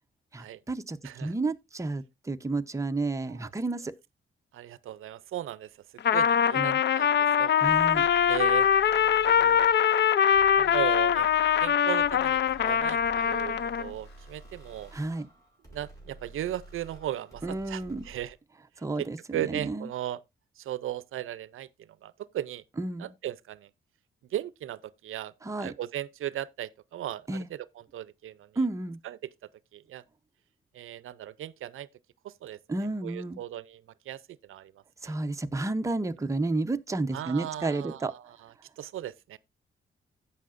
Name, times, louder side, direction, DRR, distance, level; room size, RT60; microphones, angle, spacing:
voice 1, 0.3-3.9 6.5-6.8 7.6-8.1 14.9-15.3 17.4-18.0 18.8-19.9 22.8-23.1 25.4-25.7 27.3-27.5 28.6-29.0 32.7-33.4 35.0-38.1, right 2 dB, 15° right, 0.7 m, -31 dB
voice 2, 4.5-5.7 6.1-7.5 8.3-8.8 9.3-9.7 10.5-11.3 11.6-14.9 15.7-18.4 19.0-19.1 19.3-20.2 20.6-21.7 22.0-22.6 23.0-23.7 24.3-25.3 25.6-28.5 29.0-29.2 29.7-30.0 30.7-31.9 32.2-32.6 33.0-34.7 35.0-35.2 37.1-39.4, right 12 dB, 80° right, 0.5 m, -37 dB
Trumpet, 6.0-13.9, left 8 dB, 55° left, 0.5 m, -23 dB
sound 1, 7.6-18.3, right 2 dB, 15° left, 6.4 m, -50 dB
16.0 x 5.6 x 2.5 m
cardioid pair, 110°, 21 cm